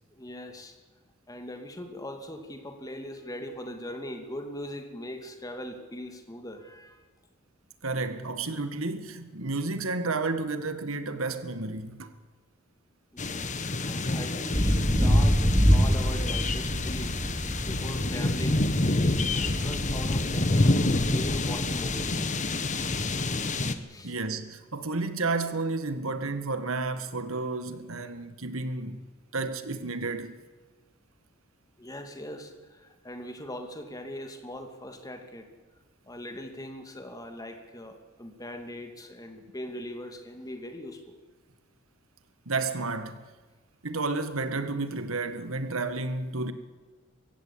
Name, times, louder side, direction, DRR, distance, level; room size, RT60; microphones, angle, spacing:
voice 1, 0.1-0.7 1.3-7.0 13.1-20.7 21.1-22.3 23.9-24.1 31.8-35.5 36.1-41.2, left 1 dB, 15° left, 2.6 m, -41 dB
voice 2, 7.8-12.1 24.0-29.0 29.3-30.4 42.5-43.2 43.8-46.5, right 3 dB, 80° right, 1.8 m, -31 dB
sound 1, 13.2-23.8, left 2 dB, 35° left, 1.3 m, -28 dB
sound 2, 14.5-22.1, equal, 15° right, 3.1 m, -27 dB
23.0 x 16.0 x 8.8 m
head